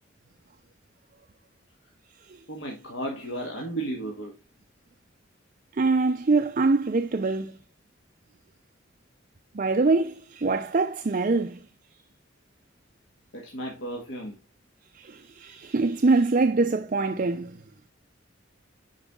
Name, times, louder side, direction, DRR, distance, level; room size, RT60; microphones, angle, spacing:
voice 1, 2.5-4.4 13.3-14.4, right 1 dB, 75° left, 1.8 m, -34 dB
voice 2, 5.8-7.6 9.5-11.6 15.0-17.5, right 3 dB, 40° right, 0.5 m, -24 dB
10.0 x 4.9 x 3.6 m
head